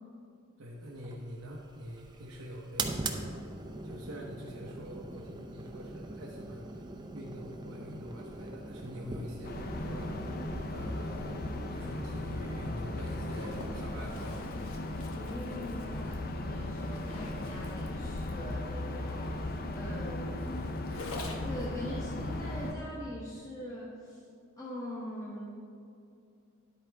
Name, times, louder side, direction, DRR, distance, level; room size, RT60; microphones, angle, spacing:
voice 1, 0.6-3.3 3.8-6.9 7.1-10.1 10.7-11.3 11.7-14.4, equal, 85° right, -3 dB, 0.9 m, -45 dB
sound 1, 0.9-16.2, right 2 dB, 20° right, 0.5 m, -43 dB
sound 2, 9.4-22.7, left 1 dB, 45° left, 0.6 m, -37 dB
Zipper (clothing), 13.0-21.7, left 2 dB, 80° left, 1.0 m, -47 dB
voice 2, 15.1-20.4 21.4-24.2 24.6-25.7, equal, 15° left, -7 dB, 1.1 m, -42 dB
10.5 x 8.4 x 3.4 m, 2.5 s
head